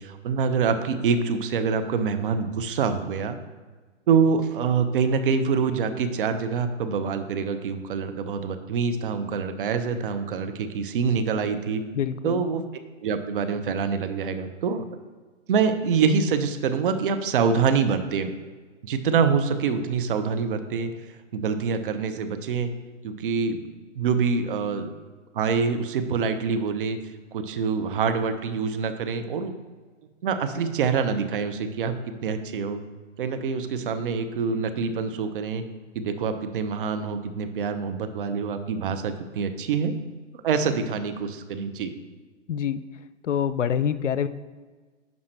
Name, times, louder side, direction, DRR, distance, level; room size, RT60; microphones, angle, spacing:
voice 1, 0.0-3.4 4.1-11.8 12.2-12.6 13.0-14.8 15.5-18.3 18.8-20.9 21.3-22.7 23.0-23.6 23.9-24.9 25.3-27.0 27.3-29.5 30.2-32.0 32.2-32.8 33.2-35.6 35.9-39.9 40.4-41.9, right 5 dB, 45° right, 8 dB, 0.8 m, -25 dB
voice 2, 11.9-12.4 42.5-42.8 43.2-44.3, left 8 dB, 80° left, 14 dB, 0.6 m, -25 dB
10.5 x 5.4 x 3.3 m, 1.4 s
figure-of-eight pair, 125°, 36 cm